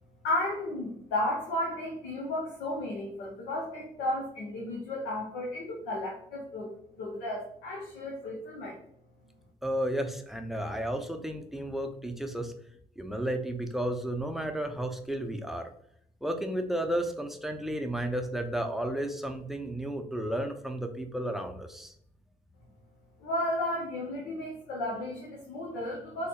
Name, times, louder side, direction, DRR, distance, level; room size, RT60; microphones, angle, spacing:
voice 1, 0.2-8.8 23.2-26.3, left 1 dB, 70° left, -2 dB, 0.7 m, -33 dB
voice 2, 9.6-12.5 13.0-15.7 16.2-21.9, right 1 dB, ahead, 5 dB, 0.6 m, -33 dB
4.1 x 2.8 x 2.3 m, 0.69 s
figure-of-eight pair, 45°, 19 cm